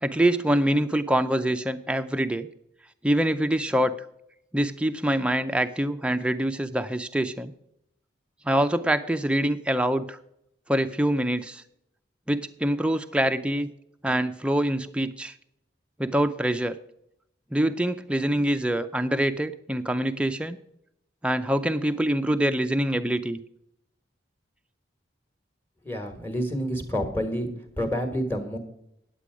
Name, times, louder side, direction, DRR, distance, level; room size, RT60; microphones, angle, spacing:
voice 1, 0.0-2.5 3.0-3.9 4.5-7.5 8.4-10.2 10.7-11.6 12.3-13.7 14.0-15.3 16.0-16.7 17.5-20.6 21.2-23.4, right 1 dB, 5° right, 8 dB, 0.4 m, -25 dB
voice 2, 25.8-27.5 27.8-28.6, equal, 10° left, 6 dB, 1.4 m, -28 dB
10.0 x 8.3 x 4.9 m, 0.78 s
head